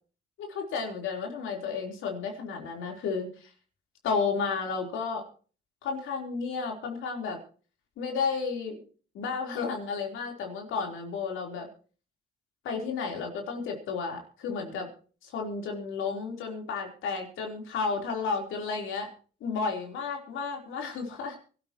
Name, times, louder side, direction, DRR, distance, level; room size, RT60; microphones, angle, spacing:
voice 1, 0.4-3.5 4.0-5.2 5.8-7.4 8.0-8.8 9.1-11.7 12.6-14.9 15.2-19.1 19.4-21.4, left 5 dB, 85° left, 2 dB, 4.0 m, -32 dB
24.0 x 12.5 x 3.1 m, 0.40 s
cardioid pair, 90°, 20 cm